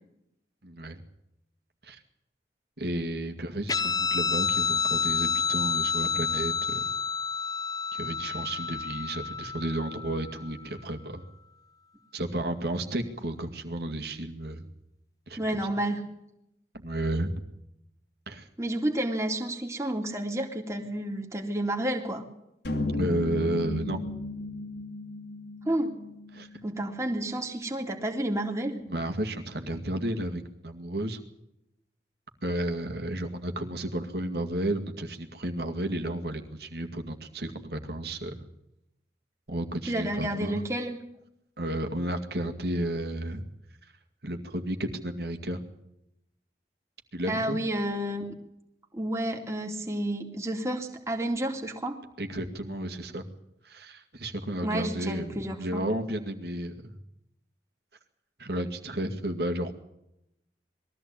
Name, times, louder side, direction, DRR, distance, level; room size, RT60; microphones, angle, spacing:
voice 1, 0.6-1.0 1.8-2.0 2.8-6.8 7.9-11.2 12.1-14.7 15.3-15.4 16.7-17.3 18.3-18.5 23.0-24.0 26.3-26.5 28.9-31.2 32.4-38.5 39.5-40.6 41.6-43.4 44.2-45.6 47.1-47.6 52.2-53.2 53.6-57.0 58.4-59.7, right 1 dB, 65° right, 5 dB, 2.2 m, -32 dB
Guitar, 3.7-10.6, left 5 dB, 20° left, 1.0 m, -29 dB
voice 2, 15.4-16.0 18.6-22.2 25.6-26.0 26.6-28.8 39.9-41.0 47.2-48.3 48.9-52.0 54.6-55.8, right 1 dB, 15° right, 2 dB, 2.4 m, -30 dB
sound 1, 22.6-27.0, left 2 dB, 75° left, 3.0 m, -34 dB
21.5 x 14.5 x 8.8 m, 0.83 s
head